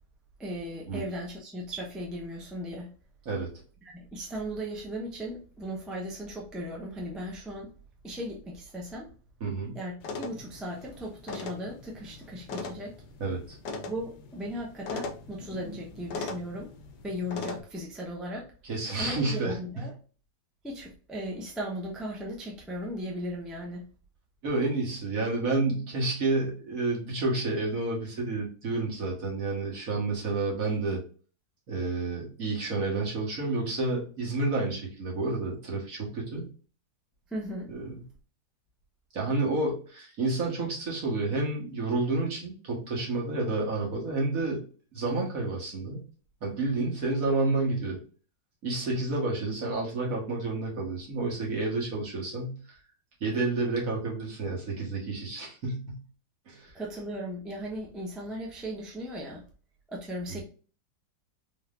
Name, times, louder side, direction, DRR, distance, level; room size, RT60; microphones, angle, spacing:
voice 1, 0.4-2.9 3.9-7.7 8.0-9.1 9.7-12.9 13.9-16.7 17.0-18.5 19.0-19.9 20.6-23.8 37.3-37.7 56.7-59.4 59.9-60.4, equal, ahead, 0.6 m, -37 dB
voice 2, 9.4-9.7 13.2-13.6 18.6-19.9 24.4-31.0 31.7-36.5 37.7-37.9 39.1-44.6 44.9-46.0 46.4-48.0 48.6-52.5 53.2-56.0 56.5-56.7, right 3 dB, 50° right, 1.7 m, -30 dB
sound 1, 10.0-17.6, left 4 dB, 70° left, 1.1 m, -40 dB
4.2 x 3.8 x 2.5 m
omnidirectional pair, 2.0 m